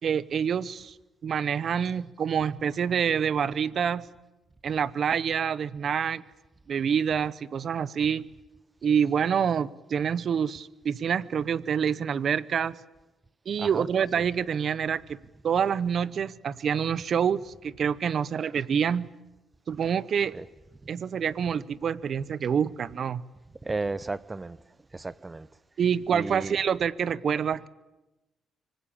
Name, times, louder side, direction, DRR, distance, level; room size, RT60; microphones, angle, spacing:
voice 1, 0.0-0.9 1.2-4.1 4.6-6.2 6.7-8.2 8.8-12.8 13.5-15.2 15.4-19.1 19.7-20.3 20.9-23.2 25.8-27.7, right 7 dB, 55° right, 0.9 m, -27 dB
voice 2, 23.6-24.6 24.9-25.5 26.1-26.6, right 3 dB, 20° right, 0.8 m, -33 dB
25.0 x 19.5 x 8.7 m
cardioid pair, 90°, 0 cm